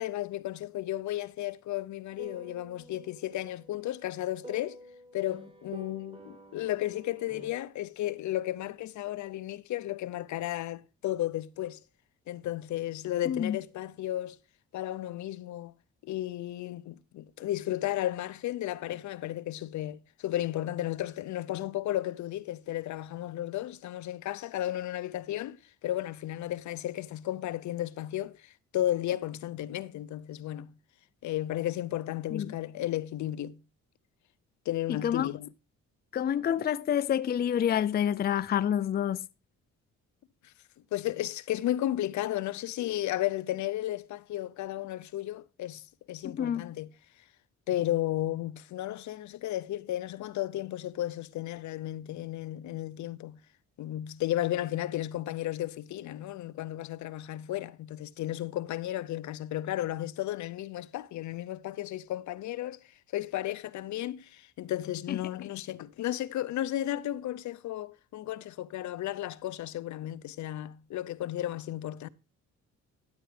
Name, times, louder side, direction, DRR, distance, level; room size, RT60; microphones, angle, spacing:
voice 1, 0.0-4.8 5.1-11.8 12.3-14.4 14.7-15.7 16.0-25.6 25.8-30.7 31.2-33.6 34.7-35.5 40.9-46.9 47.7-53.4 53.8-62.8 63.1-72.1, left 13 dB, 70° left, 0.6 m, -34 dB
sound 1, 2.2-7.5, right 1 dB, 20° right, 2.7 m, -50 dB
voice 2, 13.3-13.6 32.3-32.5 34.9-35.3 36.1-39.2 46.2-46.7 65.1-65.2, left 9 dB, 35° left, 0.4 m, -28 dB
12.5 x 9.0 x 3.3 m
cardioid pair, 90°, 30 cm